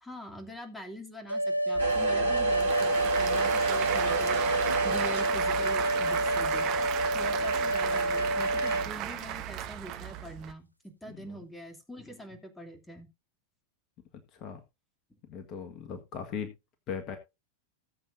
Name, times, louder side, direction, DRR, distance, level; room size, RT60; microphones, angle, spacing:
voice 1, 0.0-13.1, right 1 dB, 5° left, 5 dB, 2.7 m, -44 dB
sound 1, 1.3-8.9, right 1 dB, 90° left, 0.6 m, -28 dB
Applause / Crowd, 1.7-10.5, right 12 dB, 40° right, 1.6 m, -34 dB
sound 2, 1.8-8.8, right 5 dB, 70° right, 4.0 m, -37 dB
voice 2, 15.3-16.5 16.9-17.2, left 7 dB, 35° left, 7 dB, 1.7 m, -38 dB
18.5 x 7.8 x 2.7 m, 0.26 s
figure-of-eight pair, 90°, 0 cm